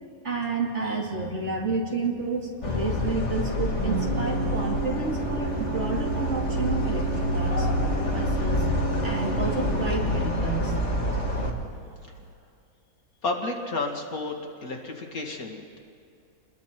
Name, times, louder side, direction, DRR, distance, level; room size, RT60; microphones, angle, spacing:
voice 1, 0.2-7.7 8.1-8.7 9.0-10.7, right 3 dB, 50° right, -1 dB, 2.8 m, -30 dB
Organ, 2.2-12.3, right 8 dB, 80° right, 1.4 m, -35 dB
sound 1, 2.6-11.5, left 1 dB, 50° left, 2.2 m, -27 dB
voice 2, 13.2-15.8, left 3 dB, 75° left, 1 dB, 2.6 m, -31 dB
28.5 x 21.0 x 4.6 m, 2.4 s
omnidirectional pair, 1.5 m